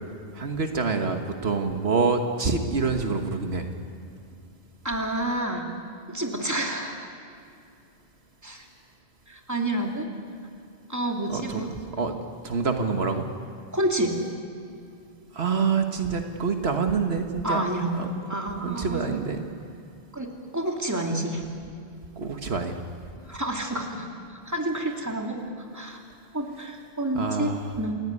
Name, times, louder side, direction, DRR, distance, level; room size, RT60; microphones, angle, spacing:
voice 1, 0.3-3.7 11.3-11.6 12.0-12.2 12.4-13.3 15.3-17.6 18.0-18.1 18.6-19.4 22.2-22.8 27.1-27.7, right 4 dB, 75° right, 5 dB, 1.6 m, -26 dB
voice 2, 4.8-5.7 6.1-7.1 8.4-8.6 9.3-10.1 10.9-11.7 13.7-14.1 17.4-19.2 20.1-20.3 20.5-21.4 23.2-24.1 24.5-25.4 25.7-26.0 26.3-27.5 27.8-27.9, right 1 dB, 15° right, 1 dB, 2.7 m, -29 dB
28.5 x 15.5 x 9.7 m, 2.5 s
omnidirectional pair, 1.1 m